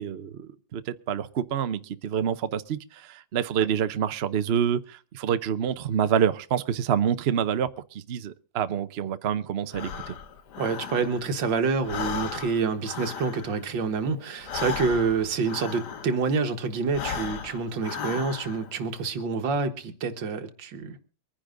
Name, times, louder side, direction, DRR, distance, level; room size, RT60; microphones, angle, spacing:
voice 1, 0.0-10.1, right 8 dB, 60° right, 0.6 m, -27 dB
Breathing, 9.7-11.5 11.8-16.4 16.8-18.8, left 6 dB, 65° left, 1.6 m, -36 dB
voice 2, 10.6-21.0, right 4 dB, 75° right, 2.0 m, -27 dB
23.5 x 10.0 x 3.8 m
omnidirectional pair, 2.0 m